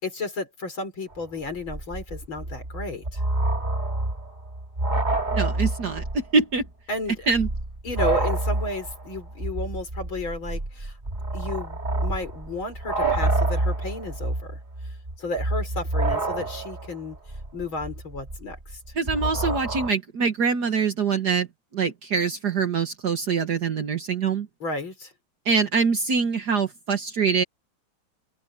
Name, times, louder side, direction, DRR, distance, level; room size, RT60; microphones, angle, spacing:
voice 1, 0.0-3.2 6.9-7.3 7.8-10.9 11.3-14.6 15.2-17.2 17.5-18.8 24.6-25.1, left 2 dB, 75° left, 5.5 m, -33 dB
sound 1, 1.2-1.3 1.4-6.3 6.6-6.7 7.2-19.9, right 2 dB, 20° right, 2.5 m, -28 dB
voice 2, 5.3-6.6 7.3-7.5 19.0-21.5 21.7-24.5 25.5-27.4, right 5 dB, 55° right, 1.9 m, -24 dB
open air
omnidirectional pair, 2.2 m